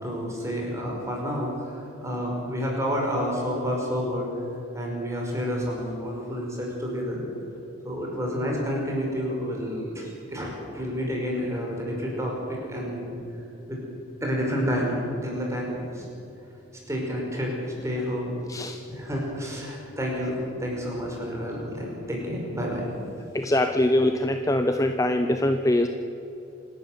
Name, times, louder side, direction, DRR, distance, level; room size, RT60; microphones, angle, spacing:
voice 1, 0.0-4.3 4.7-7.2 7.8-13.1 13.7-13.8 14.2-16.0 16.9-18.3 18.9-22.9, equal, 15° right, -1 dB, 5.4 m, -29 dB
voice 2, 23.3-25.9, left 1 dB, 15° left, 7 dB, 0.7 m, -23 dB
26.5 x 12.5 x 9.3 m, 2.8 s
head